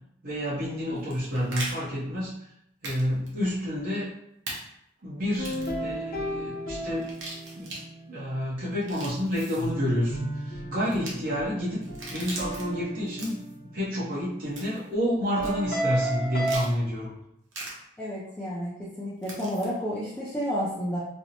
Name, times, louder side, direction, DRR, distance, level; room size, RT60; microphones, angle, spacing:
voice 1, 0.2-2.3 2.8-4.1 5.0-7.1 7.5-7.7 8.1-11.8 12.1-13.4 13.7-17.1, equal, 50° right, -8 dB, 0.8 m, -29 dB
sound 1, 1.0-1.7 2.8-3.0 3.3-3.4 4.5-4.6 5.3-5.8 7.0-7.8 8.7-9.7 10.9-11.1 11.8-12.6 13.1-13.5 14.6-14.9 15.4-15.5 16.4-16.7 17.5-17.7 19.2-19.7, right 2 dB, 80° right, 0.7 m, -39 dB
sound 2, 5.4-8.2 9.6-14.1 15.4-16.6, right 1 dB, 50° left, 0.7 m, -34 dB
voice 2, 18.0-21.0, equal, 10° left, -9 dB, 0.4 m, -31 dB
2.5 x 2.1 x 2.8 m, 0.78 s
head